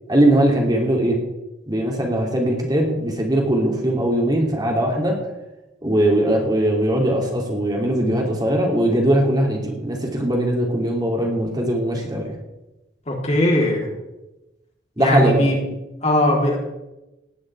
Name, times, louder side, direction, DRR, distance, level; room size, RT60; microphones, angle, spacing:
voice 1, 0.1-1.2 1.7-5.2 5.8-12.3 15.0-15.5, right 1 dB, 20° right, 0 dB, 3.1 m, -20 dB
voice 2, 13.1-13.9 15.0-15.6 16.0-16.6, left 1 dB, 35° left, -1 dB, 3.9 m, -19 dB
18.0 x 6.5 x 9.8 m, 1.0 s
head